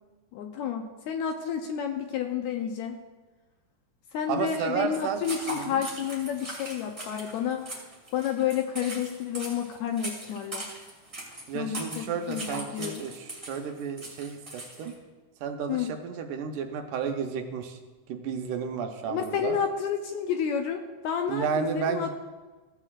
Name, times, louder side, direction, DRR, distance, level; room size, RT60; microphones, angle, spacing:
voice 1, 0.3-3.0 4.1-7.9 8.1-10.7 11.5-13.0 15.7-15.9 19.1-22.1, left 8 dB, 80° left, 4 dB, 1.8 m, -30 dB
voice 2, 4.3-5.2 5.5-5.8 11.5-14.9 15.4-17.8 18.1-19.6 21.3-22.1, right 6 dB, 80° right, 5 dB, 2.3 m, -32 dB
sound 1, 4.9-14.9, right 1 dB, 10° right, 1.8 m, -40 dB
15.5 x 7.9 x 2.4 m, 1.3 s
omnidirectional pair, 3.6 m